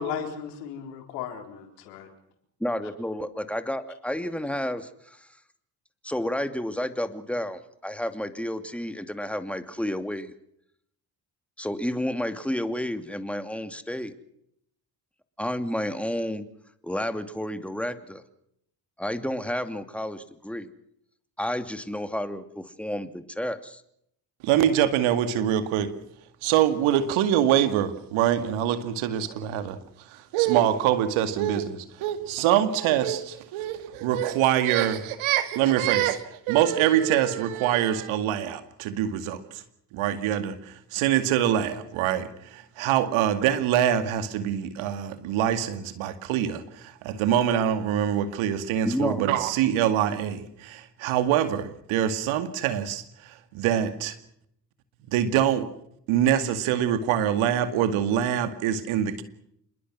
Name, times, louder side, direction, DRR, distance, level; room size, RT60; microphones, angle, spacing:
voice 1, 0.0-2.1, left 7 dB, 85° left, 4.1 m, -35 dB
voice 2, 2.6-5.3 6.0-10.3 11.6-14.1 15.4-16.5 16.8-18.2 19.0-20.7 21.4-23.8 48.8-49.3, left 1 dB, ahead, 2.7 m, -31 dB
voice 3, 24.4-25.9 26.4-29.8 30.1-39.6 39.9-54.2 55.1-55.7 56.1-59.2, right 10 dB, 75° right, 2.3 m, -24 dB
27.5 x 21.5 x 6.2 m
hypercardioid pair, 50°, 49 cm